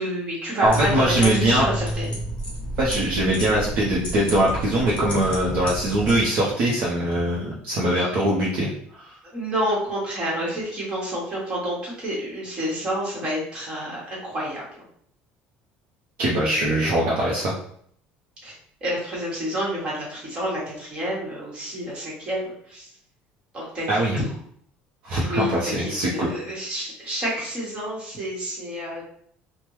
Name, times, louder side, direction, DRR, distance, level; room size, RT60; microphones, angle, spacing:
voice 1, 0.0-2.1 7.9-8.1 9.2-14.8 18.4-18.5 18.8-22.9 23.5-24.2 25.2-29.0, equal, 25° right, -5 dB, 1.3 m, -29 dB
voice 2, 0.6-1.7 2.8-9.1 16.2-17.5 23.9-24.2 25.0-26.3, right 1 dB, 45° right, -5 dB, 0.7 m, -22 dB
sound 1, 0.7-6.2, equal, 30° left, 0.9 m, -30 dB
3.4 x 2.1 x 3.0 m, 0.63 s
cardioid pair, 170°, 4 cm